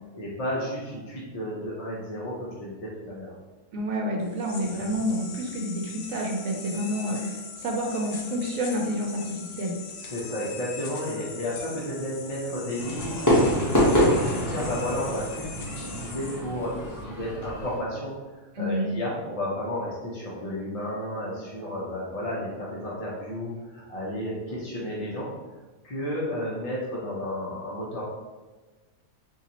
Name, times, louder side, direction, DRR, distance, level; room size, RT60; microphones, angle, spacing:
voice 1, 0.1-3.3 10.0-18.1 18.6-25.3 25.8-28.0, left 1 dB, 40° left, -5 dB, 0.5 m, -32 dB
voice 2, 3.7-9.7 18.6-18.9 21.6-21.8, equal, 75° right, 1 dB, 1.1 m, -29 dB
sound 1, 4.2-17.0, left 5 dB, 70° left, 0.9 m, -41 dB
Fireworks, 12.8-17.8, equal, 15° left, 0.9 m, -26 dB
3.9 x 2.8 x 2.9 m, 1.3 s
omnidirectional pair, 1.4 m